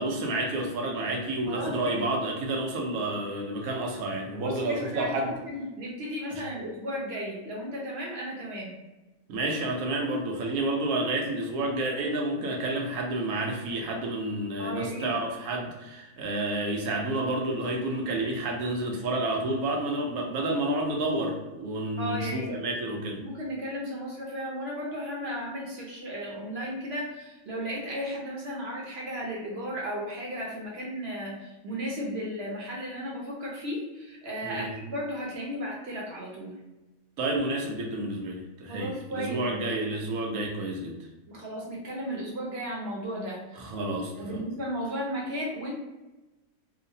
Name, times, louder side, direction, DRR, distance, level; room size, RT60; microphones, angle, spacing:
voice 1, 0.0-5.3 9.3-23.2 34.4-34.7 37.2-41.0 43.6-44.4, right 2 dB, 80° right, 1 dB, 1.1 m, -30 dB
voice 2, 1.5-2.0 4.3-8.7 14.6-15.1 22.0-22.6 23.2-36.5 38.7-39.7 41.3-43.7 44.1-45.7, equal, 55° right, -3 dB, 0.8 m, -35 dB
3.0 x 2.1 x 2.6 m, 1.1 s
omnidirectional pair, 1.5 m